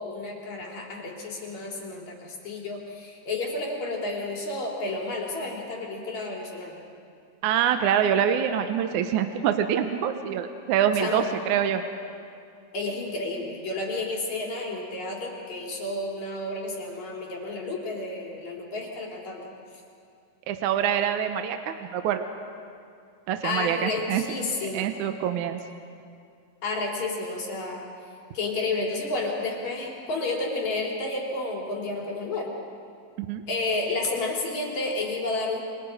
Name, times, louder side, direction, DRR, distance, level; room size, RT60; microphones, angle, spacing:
voice 1, 0.0-6.7 11.0-11.3 12.7-19.5 23.4-24.9 26.6-27.9 28.3-32.5 33.5-35.7, left 2 dB, 55° left, -2 dB, 4.3 m, -31 dB
voice 2, 7.4-11.8 20.5-22.3 23.3-24.2 24.7-25.6 33.2-33.5, right 9 dB, 70° right, 7 dB, 2.0 m, -25 dB
29.0 x 24.0 x 5.0 m, 2.3 s
omnidirectional pair, 4.1 m